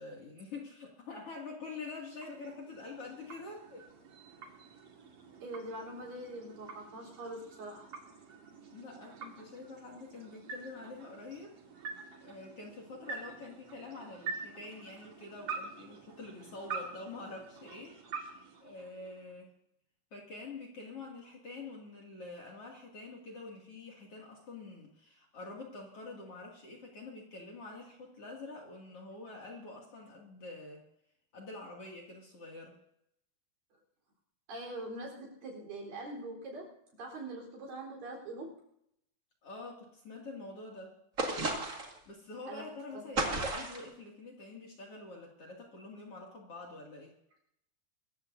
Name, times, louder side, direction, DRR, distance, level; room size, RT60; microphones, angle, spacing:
voice 1, 0.0-3.8 8.7-11.5 12.2-19.5 20.1-30.8 31.3-32.8 39.4-41.0 42.0-47.1, left 3 dB, 40° left, 0 dB, 3.1 m, -46 dB
sound 1, 1.6-19.4, right 5 dB, 45° right, 2.4 m, -47 dB
voice 2, 5.4-7.9 34.5-38.5 42.5-42.6 42.9-43.5, right 1 dB, 60° right, -1 dB, 5.7 m, -43 dB
sound 2, 41.2-42.0 43.2-43.9, right 2 dB, 30° right, 1.5 m, -33 dB
24.5 x 15.0 x 2.7 m, 0.77 s
omnidirectional pair, 4.5 m